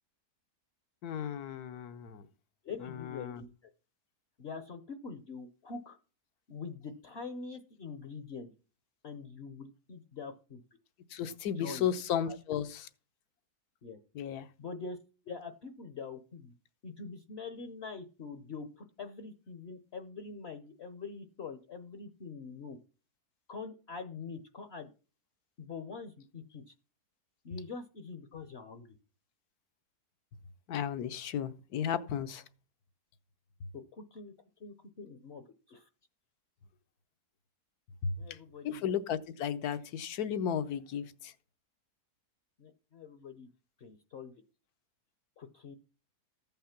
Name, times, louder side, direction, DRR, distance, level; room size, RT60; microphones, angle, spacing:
voice 1, 1.0-2.2 3.0-3.4 11.1-12.9 14.1-14.5 30.7-32.4 38.0-38.1 38.6-41.3, left 8 dB, 75° left, 13 dB, 1.3 m, -34 dB
voice 2, 2.6-3.7 4.4-6.0 6.5-8.5 9.0-10.6 11.6-11.9 12.2-12.4 13.8-14.0 14.6-15.0 15.3-16.5 16.8-22.8 23.5-24.9 25.6-26.7 27.4-29.0 33.7-34.3 34.6-35.9 38.2-38.8 42.6-43.5 43.8-44.3 45.4-45.8, left 5 dB, 50° left, 9 dB, 0.9 m, -44 dB
14.5 x 5.7 x 5.8 m, 0.37 s
omnidirectional pair, 1.7 m